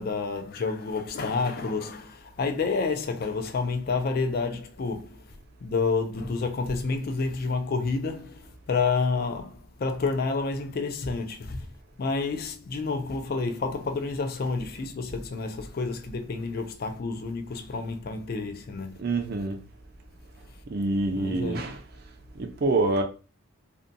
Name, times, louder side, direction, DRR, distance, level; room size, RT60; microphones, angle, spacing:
voice 1, 0.0-11.7 12.0-19.0 21.1-21.7, left 4 dB, 45° left, 0.3 m, -29 dB
voice 2, 19.0-19.6 20.7-21.8 22.4-23.0, right 2 dB, 45° right, 0.4 m, -26 dB
2.6 x 2.2 x 2.5 m
head